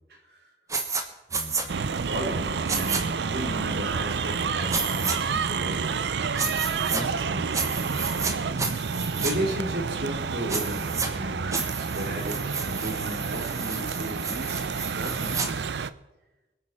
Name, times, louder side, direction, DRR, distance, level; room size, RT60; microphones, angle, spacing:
voice 1, 0.1-0.5 1.3-5.9 6.9-7.7 9.2-15.7, right 1 dB, 70° right, 2 dB, 2.8 m, -35 dB
sound 1, 0.7-1.0 1.3-1.6 2.7-3.0 4.7-5.1 6.4-7.0 7.5-8.3 8.6-9.3 10.5-11.1 11.5-15.5, right 4 dB, 20° right, 1.2 m, -31 dB
sound 2, 1.7-15.9, right 5 dB, 85° right, 0.5 m, -29 dB
24.5 x 8.5 x 4.4 m, 1.1 s
head